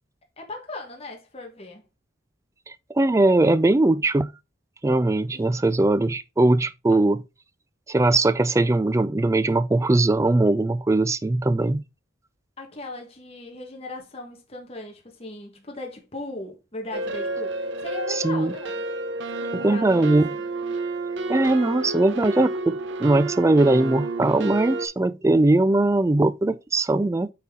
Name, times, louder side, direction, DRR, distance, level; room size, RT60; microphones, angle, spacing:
voice 1, 0.4-1.8 5.3-5.5 12.6-18.8 19.3-20.4, left 2 dB, 30° left, 1.3 m, -38 dB
voice 2, 2.7-4.3 4.8-7.2 7.9-11.8 18.1-18.5 19.5-20.3 21.3-27.3, right 2 dB, 15° right, 0.3 m, -20 dB
sound 1, 16.9-24.9, right 2 dB, 60° right, 0.8 m, -30 dB
8.3 x 4.1 x 3.7 m
head